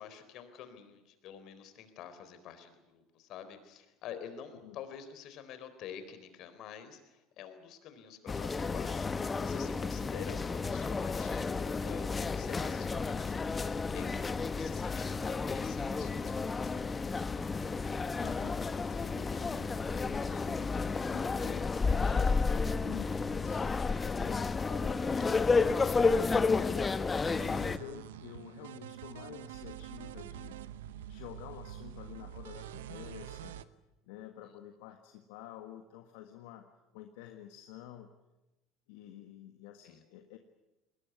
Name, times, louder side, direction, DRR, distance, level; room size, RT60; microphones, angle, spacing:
voice 1, 0.0-13.5 13.9-16.7 34.5-34.6 39.8-40.0, left 8 dB, 60° left, 10 dB, 4.0 m, -48 dB
sound 1, 8.3-27.8, left 4 dB, 25° left, 1.2 m, -31 dB
voice 2, 18.2-20.7 21.1-27.0 27.7-30.6 31.1-33.6 34.1-36.7 36.9-38.1 38.9-40.4, left 11 dB, 75° left, 6 dB, 1.6 m, -49 dB
sound 2, 27.3-33.6, right 11 dB, 85° right, 0.8 m, -46 dB
21.0 x 20.0 x 9.6 m, 1.0 s
hypercardioid pair, 80°, 0 cm